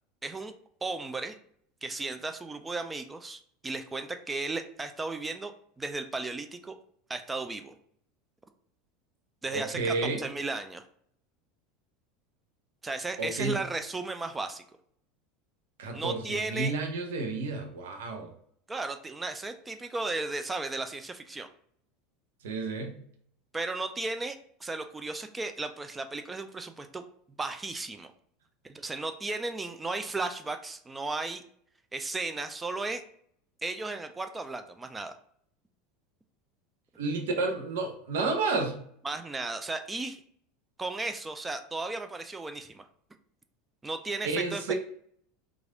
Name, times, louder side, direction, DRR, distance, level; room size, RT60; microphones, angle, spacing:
voice 1, 0.2-0.5 0.8-1.4 1.8-6.8 7.1-7.7 9.4-10.8 12.8-14.6 15.9-16.7 18.7-21.5 23.5-27.0 27.4-28.1 28.6-31.4 31.9-33.0 33.6-35.2 39.0-40.2 40.8-42.8 43.8-44.7, right 3 dB, 15° right, 7 dB, 0.3 m, -35 dB
voice 2, 9.5-10.2 13.2-13.6 15.8-18.3 22.4-22.9 37.0-38.8 44.2-44.7, right 3 dB, 70° right, 3 dB, 0.7 m, -31 dB
3.1 x 2.4 x 3.7 m, 0.64 s
hypercardioid pair, 80°, 0 cm